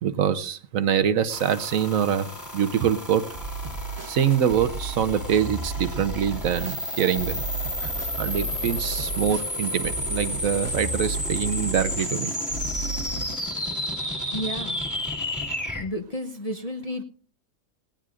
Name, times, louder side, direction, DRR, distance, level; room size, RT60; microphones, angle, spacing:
voice 1, 0.0-2.3 2.5-3.2 4.1-7.4 7.8-7.9 8.2-12.4, right 8 dB, 75° right, 11 dB, 1.2 m, -24 dB
sound 1, 1.3-15.8, left 1 dB, 15° left, 1.6 m, -32 dB
sound 2, 3.3-13.3, right 3 dB, 60° right, 1.8 m, -34 dB
voice 2, 14.3-14.8 15.8-17.0, left 1 dB, 35° left, 6 dB, 0.7 m, -32 dB
19.0 x 18.0 x 2.5 m, 0.41 s
omnidirectional pair, 1.4 m